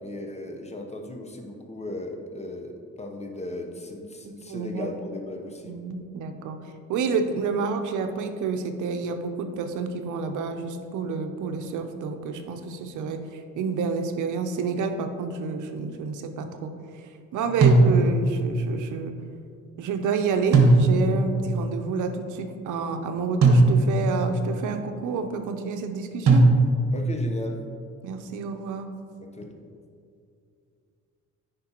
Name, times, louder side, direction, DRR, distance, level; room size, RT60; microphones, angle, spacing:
voice 1, 0.0-5.7 17.4-17.7 26.9-27.6 29.2-29.5, left 1 dB, 20° left, 3 dB, 0.9 m, -36 dB
voice 2, 4.2-4.9 5.6-6.6 6.9-17.0 17.3-19.1 19.8-26.4 28.0-28.9, right 5 dB, 80° right, 6 dB, 0.7 m, -29 dB
sound 1, 17.6-18.4 20.5-21.3 23.4-24.2 26.3-27.0, right 2 dB, 60° right, 1.1 m, -18 dB
9.6 x 5.2 x 2.9 m, 2.4 s
cardioid pair, 90°, 30 cm